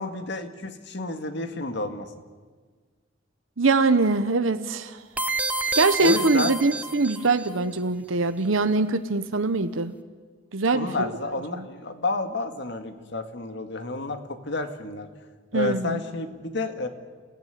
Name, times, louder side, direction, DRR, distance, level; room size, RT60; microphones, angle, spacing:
voice 1, 0.0-2.1 6.0-6.5 10.7-15.1 15.5-16.9, left 2 dB, 60° left, 7 dB, 2.0 m, -30 dB
voice 2, 3.6-5.0 5.7-9.9 10.5-11.1 11.5-11.6 15.5-16.0, right 3 dB, 85° right, 10 dB, 1.0 m, -23 dB
sound 1, 5.2-7.5, right 3 dB, 10° right, 0.8 m, -28 dB
29.0 x 16.0 x 9.3 m, 1.5 s
head